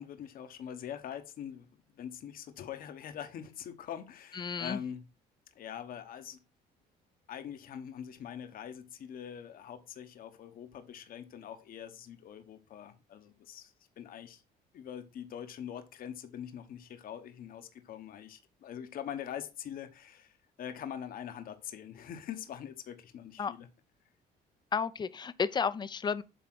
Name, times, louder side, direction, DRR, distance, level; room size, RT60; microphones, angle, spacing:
voice 1, 0.0-1.7 2.0-5.1 5.5-6.4 7.3-14.4 14.7-23.7, left 9 dB, 60° left, 1.1 m, -43 dB
voice 2, 4.4-4.8 23.4-23.5 24.7-26.2, left 6 dB, 25° left, 0.6 m, -32 dB
8.0 x 3.7 x 6.1 m
cardioid pair, 110°, 17 cm